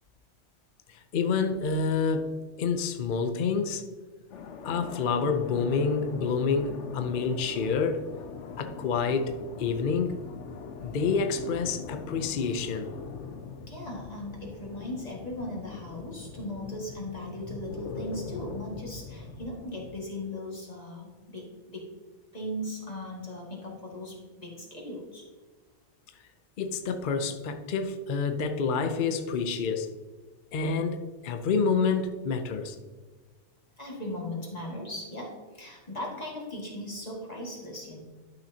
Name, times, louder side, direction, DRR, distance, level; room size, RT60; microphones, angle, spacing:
voice 1, 0.9-3.9 4.6-8.1 8.6-10.2 10.8-12.9 26.6-29.9 30.5-32.8, left 5 dB, 50° left, 7 dB, 0.7 m, -28 dB
sound 1, 4.3-20.0, left 5 dB, 75° left, 1.1 m, -42 dB
voice 2, 13.7-21.9 22.3-25.2 33.8-38.0, left 1 dB, 35° left, -2 dB, 2.1 m, -38 dB
11.5 x 6.1 x 2.8 m, 1.4 s
omnidirectional pair, 1.2 m